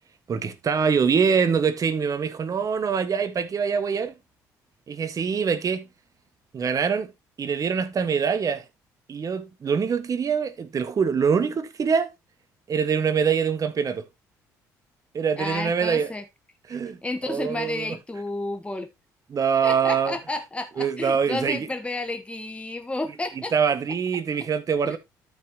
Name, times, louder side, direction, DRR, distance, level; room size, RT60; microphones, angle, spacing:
voice 1, 0.3-4.2 4.9-5.9 6.5-7.1 7.4-8.6 9.1-12.1 12.7-14.0 15.1-16.1 16.7-17.0 17.3-17.9 19.3-20.2 20.8-21.7 23.5-25.0, right 6 dB, 45° right, 1.6 m, -24 dB
voice 2, 15.4-16.2 16.7-18.9 19.6-23.5 23.9-24.0 24.9-25.0, left 2 dB, 15° left, 1.3 m, -31 dB
13.0 x 5.7 x 3.0 m
hypercardioid pair, 60°, 8 cm